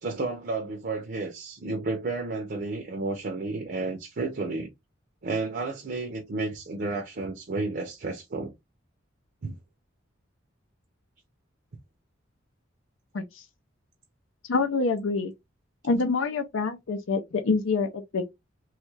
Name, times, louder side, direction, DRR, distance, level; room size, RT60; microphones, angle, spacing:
voice 1, 0.0-4.7 5.2-8.5 9.4-9.6, right 3 dB, 50° right, 0.5 m, -32 dB
voice 2, 14.5-15.3 15.8-18.3, left 4 dB, 80° left, 0.5 m, -26 dB
3.1 x 2.3 x 3.1 m
head